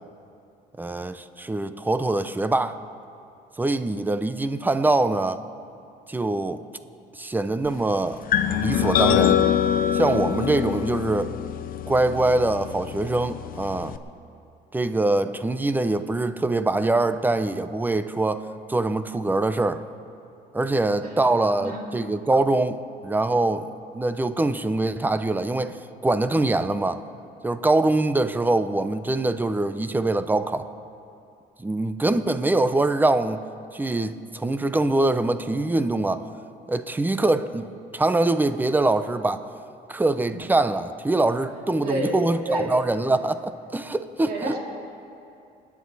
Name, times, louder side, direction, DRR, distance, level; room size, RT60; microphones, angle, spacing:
voice 1, 0.8-2.8 3.6-5.4 6.1-6.6 7.1-8.2 8.6-9.4 9.9-11.3 11.9-13.9 14.7-19.8 20.5-27.0 27.4-30.7 31.6-33.4 33.7-36.3 36.7-37.7 37.9-39.4 39.9-44.6, right 2 dB, 10° right, 11 dB, 0.7 m, -23 dB
sound 1, 8.3-14.0, left 9 dB, 55° left, 0.8 m, -24 dB
voice 2, 20.9-21.2 21.6-21.9 40.3-40.4 41.8-42.8 44.2-44.6, right 1 dB, 60° right, -1 dB, 3.1 m, -30 dB
28.0 x 9.7 x 4.1 m, 2.6 s
cardioid pair, 110°, 17 cm